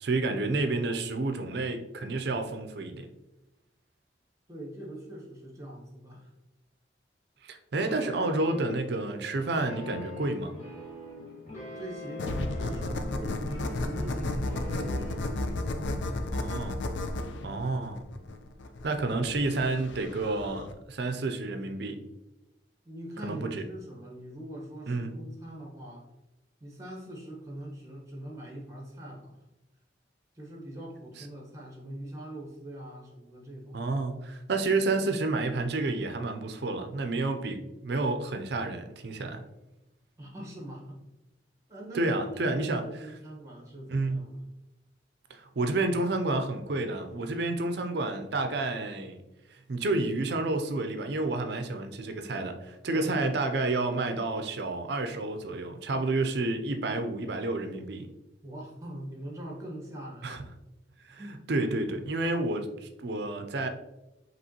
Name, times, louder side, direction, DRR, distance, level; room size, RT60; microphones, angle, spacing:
voice 1, 0.0-3.1 7.4-10.5 16.3-16.8 17.4-18.0 18.8-22.0 23.2-23.7 24.9-25.2 31.2-31.3 33.7-39.4 41.9-42.8 43.9-44.2 45.3-49.2 49.5-58.1 60.2-60.4 61.0-61.2 61.5-63.7, right 2 dB, 60° right, 6 dB, 0.5 m, -30 dB
voice 2, 4.5-6.3 11.7-15.3 15.6-16.3 22.8-26.1 26.6-29.4 30.3-33.8 40.2-41.0 41.7-44.4 52.9-53.3 58.4-60.5 61.1-61.4, right 1 dB, 15° right, -2 dB, 1.2 m, -42 dB
sound 1, 7.9-15.6, left 1 dB, 35° left, 1.3 m, -42 dB
sound 2, 12.2-20.7, left 2 dB, 75° left, 0.4 m, -33 dB
5.3 x 3.0 x 2.9 m, 0.96 s
head